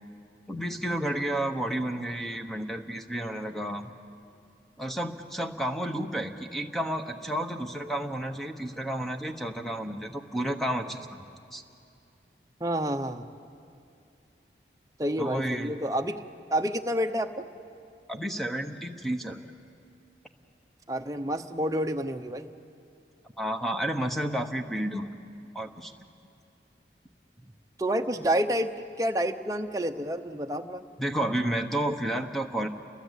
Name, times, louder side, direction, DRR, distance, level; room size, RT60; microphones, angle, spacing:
voice 1, 0.5-3.9 4.8-11.2 11.5-11.6 15.2-15.7 18.1-19.4 23.4-25.1 25.5-25.9 31.0-32.7, right 1 dB, ahead, 5 dB, 1.1 m, -31 dB
voice 2, 12.6-13.3 15.0-16.2 16.5-17.5 20.9-22.5 27.8-30.8, right 1 dB, 20° right, 5 dB, 0.8 m, -29 dB
29.5 x 22.5 x 8.3 m, 2.5 s
head